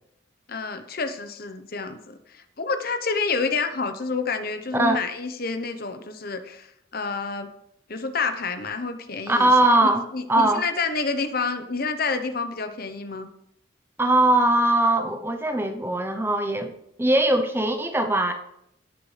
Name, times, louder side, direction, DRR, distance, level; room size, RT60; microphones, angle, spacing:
voice 1, 0.5-6.7 6.9-7.5 7.9-9.5 9.8-13.3, left 4 dB, 50° left, 8 dB, 0.9 m, -28 dB
voice 2, 9.3-10.0 10.3-10.6 14.0-18.3, right 1 dB, 10° right, 6 dB, 0.7 m, -21 dB
17.0 x 6.8 x 3.3 m, 0.77 s
head